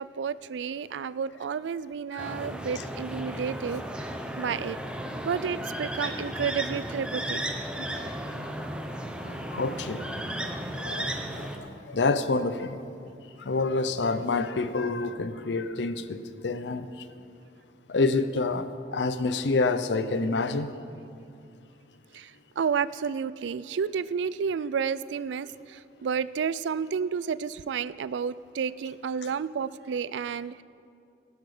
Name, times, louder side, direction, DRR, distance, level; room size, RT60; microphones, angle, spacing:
voice 1, 0.0-4.8 5.2-7.4 22.1-30.6, right 6 dB, 80° right, 17 dB, 0.3 m, -31 dB
sound 1, 2.2-11.6, right 1 dB, 5° right, 0.8 m, -34 dB
voice 2, 7.8-8.1 9.2-12.8 13.4-16.9 17.9-20.7, left 3 dB, 75° left, 11 dB, 0.6 m, -28 dB
17.5 x 8.0 x 5.0 m, 2.5 s
head